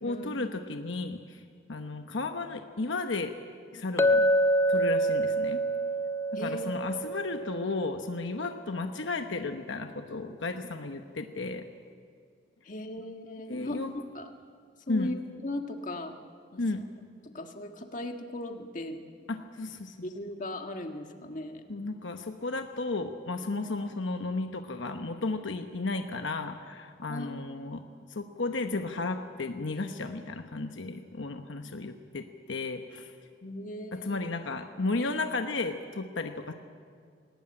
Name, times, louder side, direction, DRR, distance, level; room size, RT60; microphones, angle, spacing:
voice 1, 0.0-1.4 1.7-3.4 3.7-4.2 4.7-5.6 6.3-11.6 13.5-13.9 14.9-15.1 16.6-16.8 19.3-20.1 21.7-27.8 28.1-33.2 33.9-36.5, left 3 dB, 70° left, 6 dB, 1.0 m, -34 dB
Chink clink, 4.0-8.2, right 1 dB, 15° left, 0.5 m, -27 dB
voice 2, 6.4-6.7 12.6-13.8 14.1-14.3 14.9-15.1 15.4-16.1 16.5-16.6 17.3-19.0 20.0-21.6 27.1-27.3 33.4-34.2, left 1 dB, 40° left, 4 dB, 1.6 m, -37 dB
20.5 x 18.5 x 8.9 m, 2.2 s
head